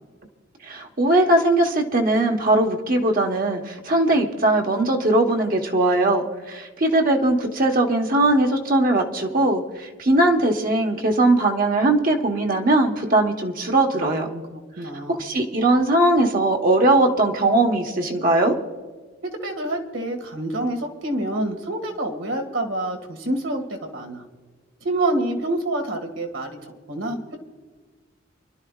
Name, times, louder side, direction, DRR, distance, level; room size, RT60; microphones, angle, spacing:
voice 1, 0.6-14.3 15.1-18.5, right 2 dB, 45° right, 2 dB, 1.3 m, -20 dB
voice 2, 13.9-15.2 19.2-24.3 24.8-27.4, right 1 dB, 85° right, 4 dB, 2.0 m, -27 dB
28.0 x 12.0 x 2.4 m, 1.4 s
head